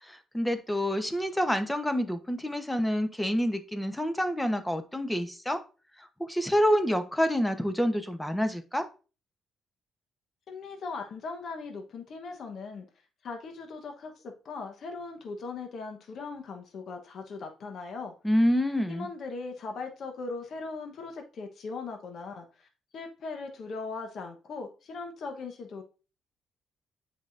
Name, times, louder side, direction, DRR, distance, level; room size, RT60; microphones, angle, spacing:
voice 1, 0.0-5.6 6.0-8.9 18.2-19.1, equal, 10° left, 0.9 m, -27 dB
voice 2, 10.5-12.8 13.2-18.1 18.9-22.7 22.9-25.8, left 4 dB, 60° left, 1.1 m, -39 dB
8.1 x 4.9 x 2.6 m
cardioid pair, 90°, 0 cm